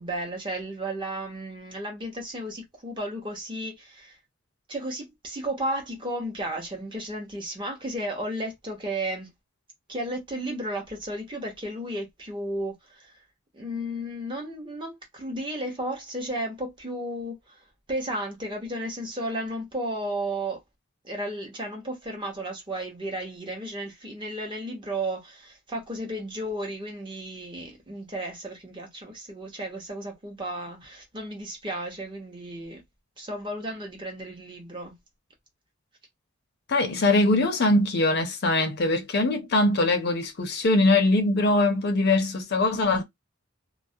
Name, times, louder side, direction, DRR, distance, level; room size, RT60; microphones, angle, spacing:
voice 1, 0.0-4.2 4.7-9.3 9.9-13.2 13.5-17.6 17.9-20.6 21.0-32.8 33.2-35.0, right 1 dB, 25° right, 0.8 m, -33 dB
voice 2, 36.7-43.0, left 2 dB, 55° left, 0.6 m, -22 dB
2.3 x 2.0 x 2.6 m
head